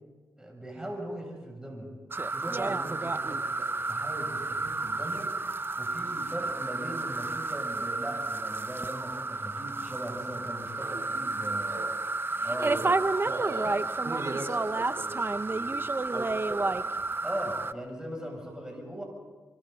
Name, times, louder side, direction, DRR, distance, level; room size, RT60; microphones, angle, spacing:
voice 1, 0.4-1.9 2.3-5.3 5.8-11.8 12.4-13.0 13.5-13.7 17.2-19.0, equal, 10° right, 0 dB, 7.7 m, -39 dB
sound 1, 2.1-17.7, right 3 dB, 35° right, 0.8 m, -31 dB
voice 2, 12.6-13.0 13.2-16.9, right 2 dB, 50° right, 2 dB, 4.2 m, -39 dB
26.0 x 24.0 x 4.2 m, 1.3 s
cardioid pair, 50°, 7 cm